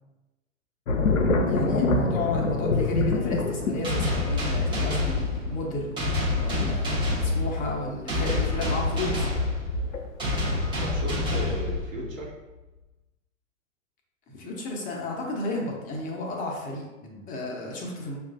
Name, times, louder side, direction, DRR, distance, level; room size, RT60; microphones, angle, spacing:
sound 1, 0.9-10.5 10.9-11.5, left 3 dB, 85° left, 0.6 m, -27 dB
voice 1, 1.5-6.0 6.3-9.3 14.3-16.9 17.3-18.2, left 2 dB, 20° left, -1 dB, 0.8 m, -32 dB
sound 2, 3.8-12.3, left 2 dB, 10° right, 1.0 m, -27 dB
voice 2, 10.3-12.3 17.0-17.3, right 1 dB, 90° right, -5 dB, 1.3 m, -37 dB
5.8 x 2.5 x 2.5 m, 1.1 s
figure-of-eight pair, 105°, 39 cm